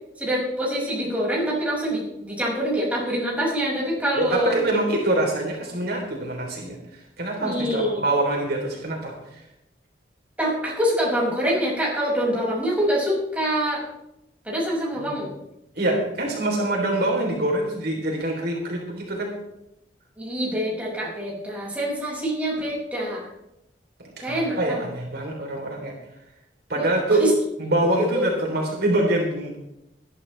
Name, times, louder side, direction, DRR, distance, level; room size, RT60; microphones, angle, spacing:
voice 1, 0.2-4.5 7.4-8.0 10.4-13.8 14.4-15.3 20.2-23.3 24.2-24.8 26.8-26.9 27.2-27.3 28.1-28.2, equal, 10° right, -4 dB, 6.0 m, -25 dB
voice 2, 4.1-9.4 14.9-15.2 15.7-19.3 24.0-25.9 26.7-27.2 27.6-29.6, right 1 dB, 60° right, 0 dB, 3.5 m, -25 dB
20.5 x 12.5 x 3.4 m, 0.85 s
head